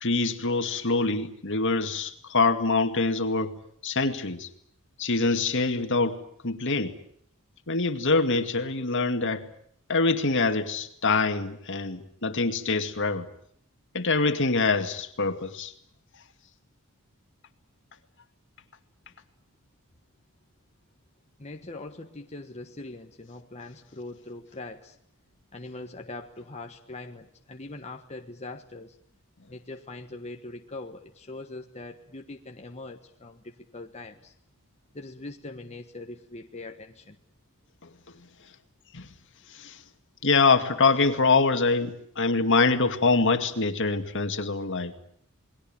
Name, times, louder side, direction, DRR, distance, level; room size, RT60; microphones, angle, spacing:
voice 1, 0.0-3.6 3.8-4.5 5.0-7.0 7.7-9.5 9.9-13.3 13.9-15.7 38.9-39.1 39.5-39.8 40.2-44.9, left 3 dB, 60° left, 7 dB, 2.3 m, -25 dB
voice 2, 21.4-25.0 25.5-29.0 29.5-34.3 34.9-37.2, left 2 dB, 30° left, 3 dB, 1.4 m, -42 dB
28.5 x 21.0 x 8.9 m, 0.67 s
head